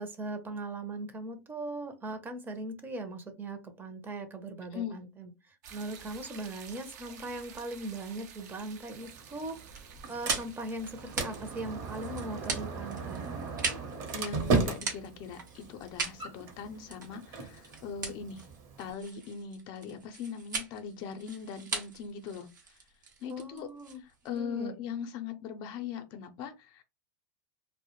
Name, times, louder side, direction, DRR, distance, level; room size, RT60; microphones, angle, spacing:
voice 1, 0.0-5.3 5.7-9.6 10.1-13.3 23.3-24.7, right 2 dB, 20° right, 0.6 m, -39 dB
sound 1, 5.6-14.5, right 7 dB, 70° right, 0.5 m, -52 dB
Sliding door, 8.9-18.9, right 4 dB, 50° right, 0.8 m, -36 dB
sound 2, 9.7-24.4, right 4 dB, 90° right, 0.8 m, -40 dB
voice 2, 14.1-18.5 18.8-22.5 23.2-23.7 24.0-26.8, left 6 dB, 45° left, 0.5 m, -40 dB
2.1 x 2.1 x 3.0 m
hypercardioid pair, 100°, 10 cm